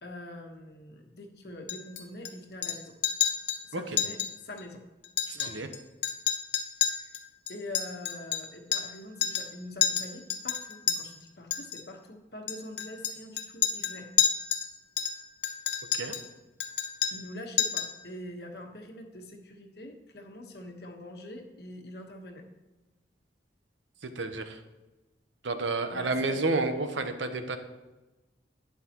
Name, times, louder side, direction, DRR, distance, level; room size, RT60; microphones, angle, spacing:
voice 1, 0.0-3.0 3.6-4.8 5.3-5.6 6.9-7.2 7.5-14.1 17.1-22.5 25.9-26.4, left 1 dB, 60° left, 3 dB, 1.3 m, -44 dB
Chink clink, 1.7-2.3 2.6-2.8 3.0-3.6 4.0-4.3 4.6-4.7 5.0-5.8 6.0-9.0 9.2-9.5 9.8-11.0 11.5-11.8 12.5-14.7 15.0-16.3 16.6-17.3 17.6-18.0, left 9 dB, 80° left, 1.0 m, -29 dB
voice 2, 5.3-5.7 15.9-16.1 24.0-24.6 25.4-27.6, right 3 dB, 90° right, 8 dB, 1.0 m, -30 dB
11.5 x 9.7 x 3.0 m, 1.1 s
head